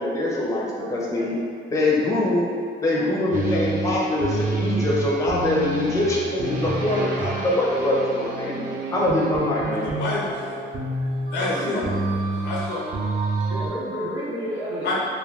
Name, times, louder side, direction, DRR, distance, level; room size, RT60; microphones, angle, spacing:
voice 1, 0.0-1.3 1.7-2.5 2.8-8.5 8.9-9.9 11.4-12.0, left 1 dB, 15° left, -4 dB, 0.5 m, -23 dB
voice 2, 0.8-1.4 2.9-3.1 8.2-8.6 13.5-14.9, equal, 90° right, -7 dB, 0.8 m, -32 dB
sound 1, 3.3-13.7, right 2 dB, 40° right, 0.6 m, -28 dB
voice 3, 9.8-10.6 11.3-11.9 12.4-12.9 14.8-14.9, left 2 dB, 60° left, -5 dB, 0.5 m, -28 dB
2.3 x 2.2 x 3.3 m, 2.3 s
cardioid pair, 90°, 20 cm